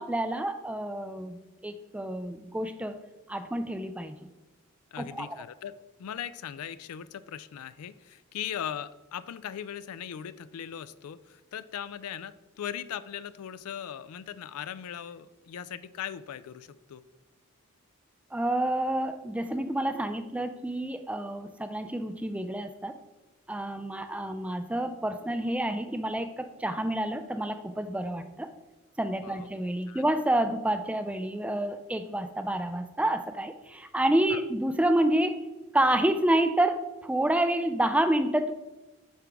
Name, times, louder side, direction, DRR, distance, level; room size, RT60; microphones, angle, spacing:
voice 1, 0.0-3.0 3.3-4.3 5.0-5.3 18.3-23.0 23.5-28.5 29.0-35.4 35.7-38.5, right 1 dB, 5° right, 9 dB, 0.3 m, -28 dB
voice 2, 4.9-5.7 6.0-17.0 29.2-29.5 29.9-30.0 34.3-34.4, left 9 dB, 85° left, 16 dB, 0.4 m, -39 dB
8.6 x 5.9 x 3.4 m, 1.1 s
head